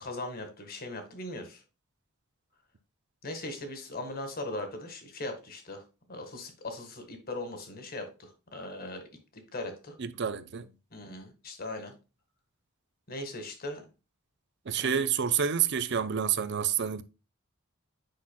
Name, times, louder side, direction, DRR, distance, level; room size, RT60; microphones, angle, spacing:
voice 1, 0.0-1.6 3.2-5.8 6.1-9.0 9.3-9.9 10.9-11.9 13.1-13.9 14.7-15.0, left 2 dB, 50° left, 1.7 m, -39 dB
voice 2, 10.0-10.7 14.7-17.0, right 8 dB, 60° right, 0.6 m, -28 dB
8.5 x 5.8 x 2.2 m
head